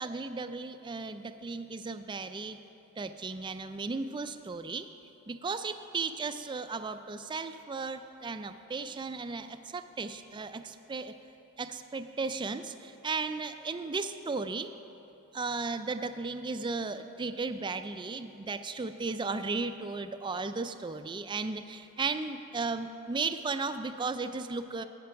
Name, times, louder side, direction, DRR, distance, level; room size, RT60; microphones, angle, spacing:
voice 1, 0.0-2.6 3.0-4.9 5.3-11.1 11.6-14.7 15.3-24.8, right 4 dB, 20° right, 10 dB, 0.4 m, -35 dB
15.5 x 6.0 x 5.7 m, 3.0 s
head